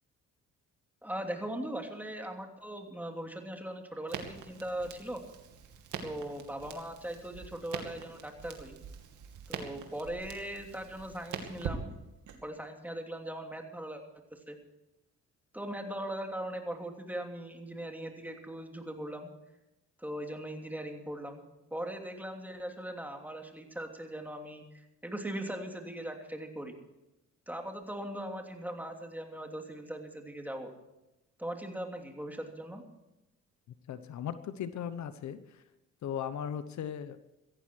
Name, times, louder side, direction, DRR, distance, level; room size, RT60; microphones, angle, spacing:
voice 1, 1.0-5.2 6.0-8.8 9.5-11.9 12.4-14.0 14.3-14.6 15.5-19.3 20.0-21.4 21.7-26.8 27.5-30.7 31.4-32.8, right 1 dB, 5° right, 3 dB, 3.0 m, -39 dB
Crackle, 4.1-12.4, right 7 dB, 75° right, 2.5 m, -44 dB
voice 2, 33.9-35.6 36.0-37.2, left 9 dB, 65° left, 12 dB, 1.1 m, -37 dB
17.0 x 14.5 x 4.7 m, 0.96 s
cardioid pair, 90°, 30 cm